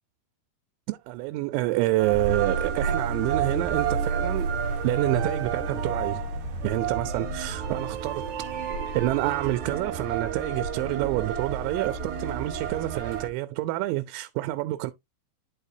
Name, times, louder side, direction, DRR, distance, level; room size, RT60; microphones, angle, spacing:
voice 1, 0.9-4.6 4.8-6.2 6.6-8.3 8.9-14.9, right 18 dB, 90° right, 2.9 m, -28 dB
sound 1, 2.0-13.3, right 6 dB, 60° right, 2.1 m, -30 dB
11.0 x 4.1 x 2.7 m
omnidirectional pair, 5.2 m